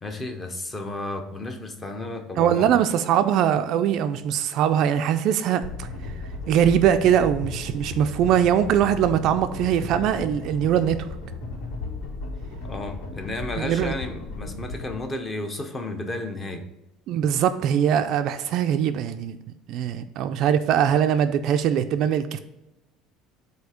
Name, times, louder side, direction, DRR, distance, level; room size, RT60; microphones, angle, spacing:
voice 1, 0.0-2.7 12.6-16.6, left 2 dB, 15° left, 6 dB, 0.6 m, -33 dB
voice 2, 2.4-5.9 6.5-11.1 13.6-14.0 17.1-19.4 19.7-22.4, right 9 dB, 45° right, 9 dB, 0.3 m, -22 dB
sound 1, 5.6-15.0, left 3 dB, 85° left, 1.9 m, -35 dB
7.9 x 2.8 x 4.8 m, 0.96 s
cardioid pair, 180°, 0 cm